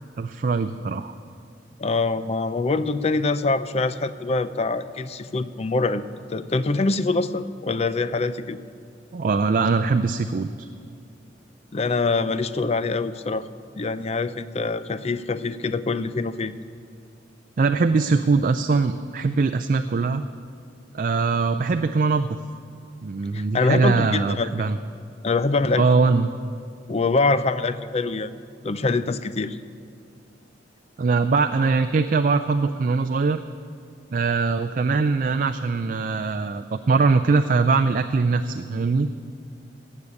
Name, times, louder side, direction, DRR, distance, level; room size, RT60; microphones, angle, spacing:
voice 1, 0.2-1.1 9.1-10.7 17.6-20.2 20.9-22.4 23.0-24.8 25.7-26.3 31.0-33.4 34.1-39.1, right 4 dB, 45° right, 9 dB, 0.4 m, -22 dB
voice 2, 1.8-6.0 6.3-8.6 11.7-13.5 13.8-16.5 23.3-24.5 25.2-25.8 26.9-28.3 28.6-29.6, left 3 dB, 35° left, 13 dB, 0.4 m, -24 dB
17.0 x 6.6 x 8.4 m, 2.4 s
head